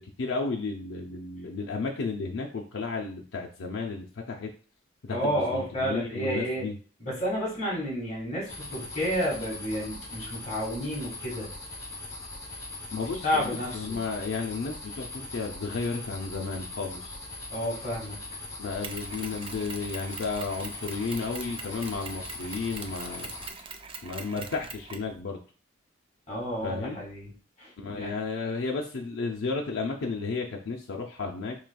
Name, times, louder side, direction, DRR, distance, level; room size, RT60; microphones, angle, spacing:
voice 1, 0.0-4.5 5.0-6.7 12.9-17.2 18.6-23.3 24.0-25.4 26.6-27.0 27.8-31.6, left 4 dB, 70° left, 0 dB, 0.5 m, -33 dB
voice 2, 5.1-6.6 7.0-11.5 13.2-14.0 17.5-18.2 26.3-27.3 27.6-28.1, equal, 35° left, -5 dB, 1.7 m, -31 dB
sound 1, 8.5-23.5, left 2 dB, 15° left, 0.7 m, -41 dB
Mechanisms, 18.8-25.1, right 5 dB, 25° right, 0.3 m, -43 dB
4.8 x 3.3 x 2.3 m, 0.39 s
head